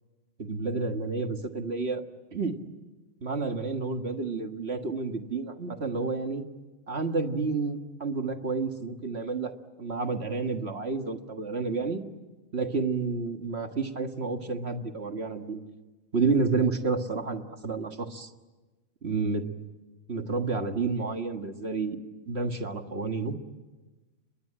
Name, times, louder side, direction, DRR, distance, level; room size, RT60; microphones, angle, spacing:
voice 1, 0.4-2.0 2.3-2.5 3.2-6.4 6.9-9.5 9.8-12.0 12.5-15.6 16.1-18.3 19.0-19.5 20.1-22.0 22.3-23.4, right 4 dB, 50° right, 6 dB, 1.9 m, -30 dB
29.5 x 22.0 x 8.8 m, 1.2 s
omnidirectional pair, 1.4 m